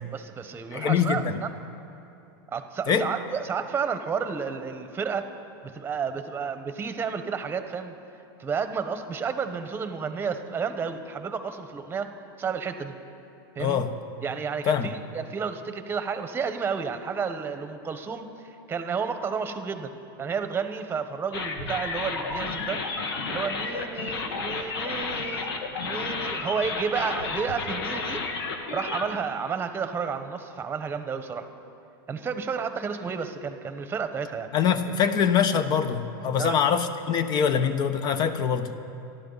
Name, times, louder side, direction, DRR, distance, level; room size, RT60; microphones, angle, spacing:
voice 1, 0.1-1.5 2.5-5.3 5.6-7.9 8.4-12.1 12.4-13.0 13.5-13.8 14.2-18.3 18.7-19.9 20.2-22.8 23.3-25.6 25.8-28.2 28.7-31.5 32.1-34.5 36.4-36.6, right 6 dB, 20° right, 8 dB, 1.2 m, -31 dB
voice 2, 0.7-1.4 2.9-3.1 13.6-13.9 14.7-14.9 34.5-38.7, left 7 dB, 35° left, 10 dB, 1.1 m, -24 dB
sound 1, 21.3-29.1, left 4 dB, 85° left, 1.9 m, -32 dB
28.5 x 12.0 x 4.1 m, 2.7 s
supercardioid pair, 130°, 12 cm